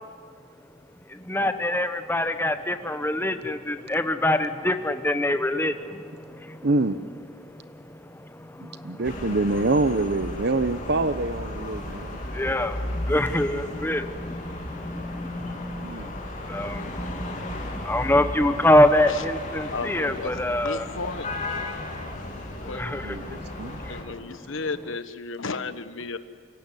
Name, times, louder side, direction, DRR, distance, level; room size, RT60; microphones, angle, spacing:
voice 1, 1.1-6.0 6.3-6.6 8.4-9.0 11.8-20.9 22.6-24.1, left 1 dB, 10° left, 9 dB, 1.1 m, -25 dB
voice 2, 6.6-7.0 8.6-12.2 13.7-13.8 15.8-16.1 23.0-23.8, right 2 dB, 50° right, 13 dB, 0.9 m, -26 dB
sound 1, 9.0-24.0, left 1 dB, 35° left, 3.3 m, -35 dB
sound 2, 16.6-23.1, equal, 50° left, 5.5 m, -46 dB
voice 3, 19.7-21.3 21.7-21.8 22.6-22.8 23.9-26.2, left 3 dB, 65° left, 11 dB, 1.2 m, -33 dB
29.0 x 17.0 x 9.9 m, 2.2 s
head